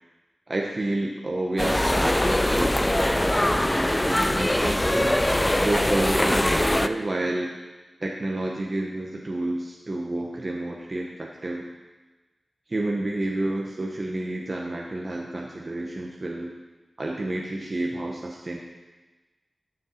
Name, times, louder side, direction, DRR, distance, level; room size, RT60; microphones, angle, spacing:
voice 1, 0.5-5.2 5.6-7.5 8.0-11.7 12.7-16.5 17.0-18.6, right 2 dB, 40° right, -1 dB, 1.0 m, -30 dB
sound 1, 1.6-6.9, left 1 dB, 15° left, 0.4 m, -22 dB
13.0 x 6.6 x 4.3 m, 1.2 s
wide cardioid pair, 70°, 0 cm